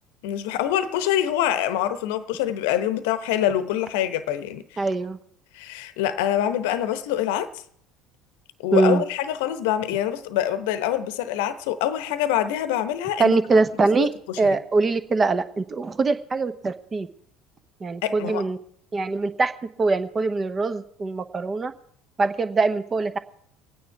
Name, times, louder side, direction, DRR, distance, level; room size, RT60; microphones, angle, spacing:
voice 1, 0.2-4.8 5.5-7.5 8.6-13.4 13.9-14.6 18.0-18.5, left 11 dB, 70° left, 0.9 m, -25 dB
voice 2, 4.8-5.2 8.7-9.0 13.2-14.1 14.4-17.1 17.8-18.6 18.9-19.5 19.8-21.7 22.2-23.2, right 3 dB, 30° right, 1.1 m, -22 dB
23.5 x 9.4 x 4.7 m
figure-of-eight pair, 65°, 0 cm